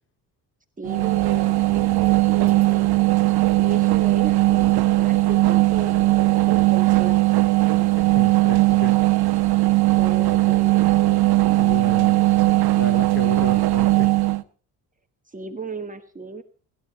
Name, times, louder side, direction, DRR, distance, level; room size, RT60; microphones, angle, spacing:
voice 1, 0.8-3.1 3.6-7.5 10.0-11.3 15.3-16.4, right 4 dB, 20° right, 5 dB, 1.4 m, -35 dB
sound 1, 0.8-14.4, right 18 dB, 65° right, 1.3 m, -18 dB
voice 2, 7.7-9.0 11.6-12.2 12.8-14.1, left 2 dB, 30° left, 5 dB, 4.1 m, -33 dB
25.0 x 11.5 x 4.2 m, 0.39 s
cardioid pair, 105°, 40 cm